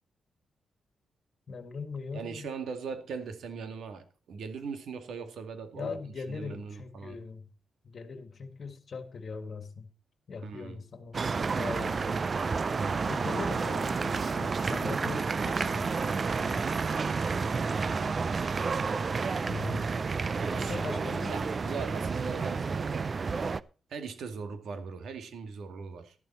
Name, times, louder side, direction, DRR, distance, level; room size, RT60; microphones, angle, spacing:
voice 1, 1.5-2.5 5.8-7.5 7.8-9.9 10.3-11.2 11.5-12.3 13.1-16.7 19.5-19.9 20.5-21.8, left 5 dB, 45° left, 1.7 m, -40 dB
voice 2, 2.1-6.0 6.3-7.2 10.4-10.8 12.7-13.1 17.6-18.7 20.3-23.1 23.9-26.2, right 5 dB, 75° right, 2.1 m, -40 dB
sound 1, 11.1-23.6, right 4 dB, 35° right, 0.5 m, -30 dB
12.0 x 11.5 x 4.2 m
wide cardioid pair, 130°, 0 cm